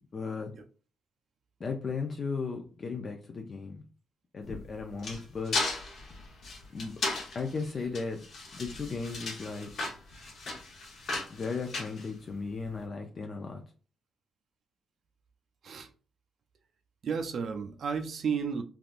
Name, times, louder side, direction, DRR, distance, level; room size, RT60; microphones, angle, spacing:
voice 1, 0.1-0.5 1.6-3.8 4.3-5.6 6.7-6.9 7.3-8.2 8.5-9.7 11.3-13.6, left 4 dB, 40° left, 0.4 m, -36 dB
sound 1, 4.4-12.7, left 3 dB, 60° left, 1.0 m, -36 dB
voice 2, 17.0-18.6, right 6 dB, 55° right, 0.4 m, -32 dB
3.4 x 2.4 x 2.4 m
cardioid pair, 90°, 0 cm